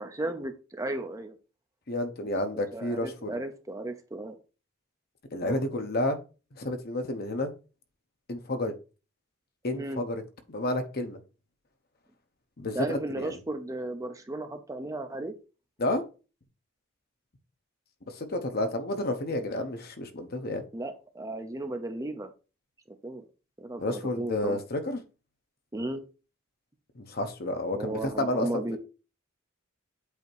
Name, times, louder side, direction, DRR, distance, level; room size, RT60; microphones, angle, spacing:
voice 1, 0.0-1.3 2.5-4.4 5.4-5.6 9.7-10.0 12.7-15.3 20.7-22.3 23.0-23.2 23.6-24.6 25.7-26.0 27.7-28.8, right 1 dB, 15° right, 0.6 m, -35 dB
voice 2, 1.9-3.4 5.3-6.2 6.5-7.5 8.3-8.7 9.6-10.2 10.5-11.2 12.6-13.3 15.8-16.0 18.1-20.6 23.8-25.0 27.0-28.6, left 1 dB, 50° left, 1.0 m, -30 dB
8.1 x 2.9 x 4.5 m
head